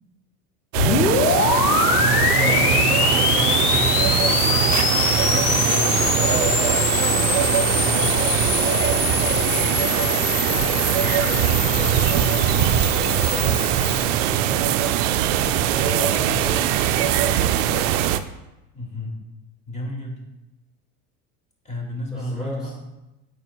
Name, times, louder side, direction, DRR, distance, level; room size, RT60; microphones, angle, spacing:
sound 1, 0.7-14.1, left 6 dB, 90° left, 0.7 m, -23 dB
voice 1, 0.7-1.1 2.1-3.3 6.2-7.4 10.5-14.6 15.3-18.0 22.1-22.7, right 1 dB, ahead, -6 dB, 1.2 m, -33 dB
sound 2, 0.7-18.2, right 11 dB, 60° right, 0.5 m, -21 dB
voice 2, 1.6-4.9 5.3-6.0 7.6-8.4 18.7-19.1 19.7-20.2 21.6-22.7, left 1 dB, 15° left, -1 dB, 2.1 m, -32 dB
8.6 x 4.8 x 2.3 m, 0.97 s
hypercardioid pair, 75°, 44 cm